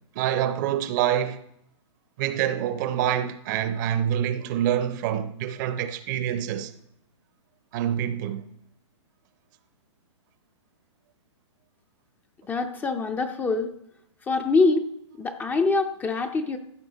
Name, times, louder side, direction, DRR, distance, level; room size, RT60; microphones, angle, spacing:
voice 1, 0.2-1.4 2.2-6.7 7.7-8.4, right 10 dB, 35° right, 0.6 m, -26 dB
voice 2, 12.5-13.7 14.3-14.9 15.2-16.6, left 3 dB, 10° left, 0.4 m, -24 dB
14.5 x 7.1 x 3.9 m
hypercardioid pair, 140°, 16 cm